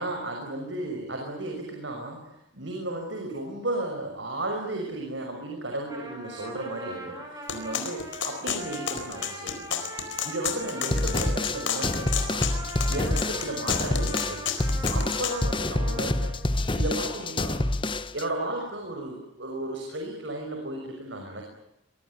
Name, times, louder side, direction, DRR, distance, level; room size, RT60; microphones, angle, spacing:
voice 1, 0.0-12.5 12.9-14.4 14.9-16.3 16.7-17.7 18.1-21.4, right 1 dB, 75° right, 2 dB, 5.9 m, -34 dB
Trumpet, 5.8-16.6, right 1 dB, 20° right, 7.7 m, -41 dB
sound 1, 7.5-15.4, left 8 dB, 85° left, 4.5 m, -31 dB
sound 2, 10.9-18.2, left 1 dB, 25° left, 1.1 m, -27 dB
24.5 x 23.0 x 8.9 m, 0.83 s
head